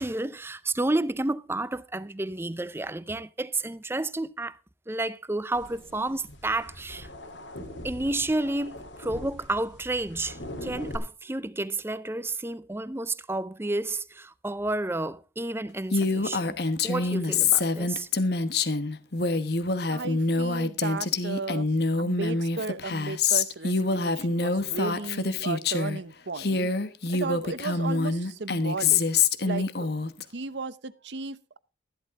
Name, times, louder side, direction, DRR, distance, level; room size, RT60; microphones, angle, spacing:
voice 1, 0.0-4.6 4.9-7.1 7.8-18.1, right 2 dB, 15° right, 0.5 m, -31 dB
sound 1, 5.5-11.0, left 1 dB, 80° left, 3.6 m, -41 dB
Female speech woman speaking, 15.9-26.0 26.4-30.2, left 4 dB, 60° left, 1.2 m, -26 dB
voice 2, 19.9-21.7 22.0-26.7 27.1-29.0 29.4-29.9 30.3-31.6, right 4 dB, 70° right, 0.8 m, -35 dB
13.5 x 12.0 x 3.7 m
head